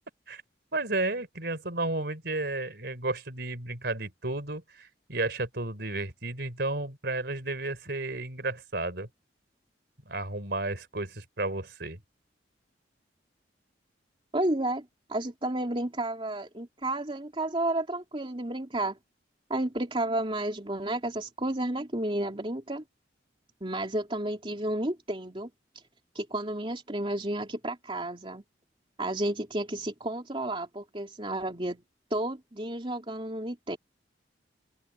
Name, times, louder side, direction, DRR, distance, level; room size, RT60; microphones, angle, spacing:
voice 1, 0.7-9.1 10.1-12.0, right 2 dB, 60° right, 4.3 m, -32 dB
voice 2, 14.3-19.0 19.5-22.8 23.6-25.5 26.1-28.4 29.0-31.8 32.1-33.8, right 1 dB, 30° right, 3.0 m, -31 dB
open air
head